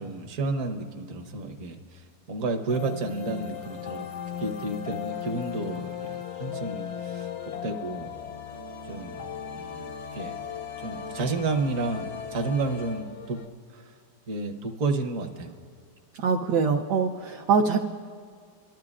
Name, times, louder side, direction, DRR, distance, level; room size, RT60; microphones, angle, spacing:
voice 1, 0.0-4.1 4.4-7.3 7.6-8.1 8.9-10.3 10.8-13.4 13.7-13.9 14.3-15.5, right 3 dB, 50° right, 5 dB, 1.2 m, -31 dB
sound 1, 2.7-13.5, left 8 dB, 70° left, 0.7 m, -37 dB
voice 2, 16.2-17.8, right 5 dB, 70° right, 1 dB, 1.1 m, -23 dB
26.0 x 12.0 x 2.4 m, 2.1 s
omnidirectional pair, 2.0 m